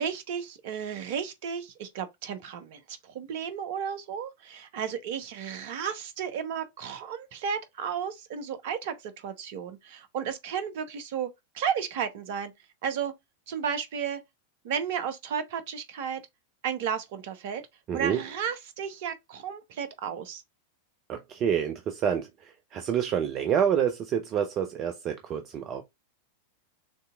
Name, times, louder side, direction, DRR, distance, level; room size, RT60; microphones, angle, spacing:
voice 1, 0.0-11.3 11.5-12.5 12.8-13.1 13.5-14.2 14.6-16.2 16.6-17.6 17.9-20.4, right 7 dB, 50° right, 0.9 m, -33 dB
voice 2, 17.9-18.2 21.1-25.8, right 8 dB, 35° right, 0.5 m, -28 dB
6.5 x 2.9 x 2.3 m
figure-of-eight pair, 90°, 0 cm